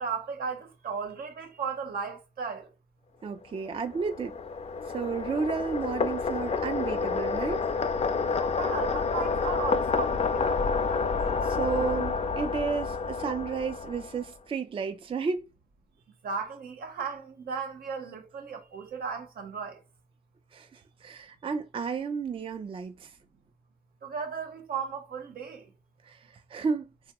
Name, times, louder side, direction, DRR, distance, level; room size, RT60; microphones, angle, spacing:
voice 1, 0.0-2.7 8.3-10.7 16.2-19.8 24.0-25.7, right 5 dB, 80° right, 0.8 m, -35 dB
voice 2, 3.2-4.3 4.9-7.6 11.4-15.4 20.5-23.1 26.0-26.9, right 5 dB, 35° right, 0.4 m, -32 dB
sound 1, 3.6-14.3, left 5 dB, 45° left, 0.4 m, -29 dB
3.4 x 2.0 x 2.9 m
cardioid pair, 60°, 15 cm